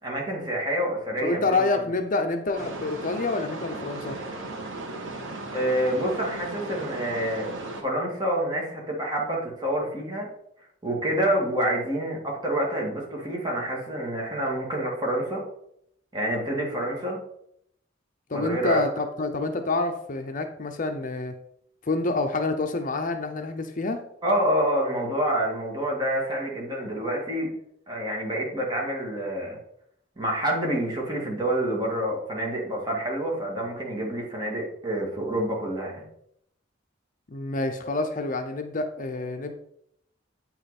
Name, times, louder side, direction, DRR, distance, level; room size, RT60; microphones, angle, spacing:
voice 1, 0.0-1.8 5.5-7.5 7.8-10.3 10.8-15.4 16.1-17.2 18.3-18.8 24.2-27.5 27.9-29.6 30.2-36.0, right 1 dB, 25° right, -2 dB, 2.3 m, -27 dB
voice 2, 1.2-4.2 18.3-21.3 21.9-24.0 37.3-39.5, left 3 dB, 45° left, 6 dB, 0.7 m, -27 dB
sound 1, 2.5-7.8, right 2 dB, 85° right, 1.5 m, -36 dB
8.6 x 5.7 x 4.2 m, 0.72 s
head